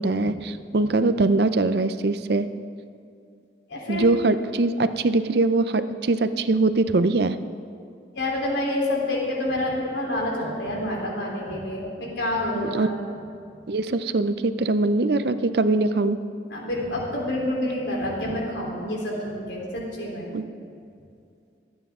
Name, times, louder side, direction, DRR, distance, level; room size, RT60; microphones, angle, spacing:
voice 1, 0.0-2.5 3.9-7.4 12.5-12.9 13.7-16.2 20.3-20.5, right 2 dB, 60° right, 11 dB, 0.5 m, -22 dB
voice 2, 3.7-4.1 8.1-13.0 16.5-20.3, left 1 dB, 85° left, -3 dB, 3.6 m, -28 dB
26.5 x 9.2 x 3.7 m, 2.4 s
head